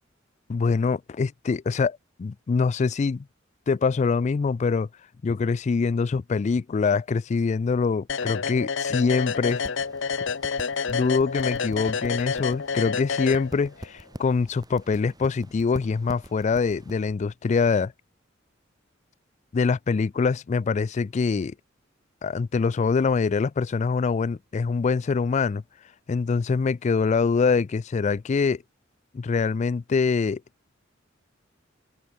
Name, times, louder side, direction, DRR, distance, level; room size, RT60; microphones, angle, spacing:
voice 1, 0.5-3.3 3.7-4.9 5.2-9.6 10.9-17.9 19.5-21.5 22.2-25.6 26.1-28.6 29.1-30.4, left 4 dB, 35° left, 0.3 m, -24 dB
sound 1, 8.1-13.9, left 5 dB, 65° left, 0.9 m, -29 dB
sound 2, 9.4-17.1, equal, 20° right, 4.4 m, -45 dB
open air
head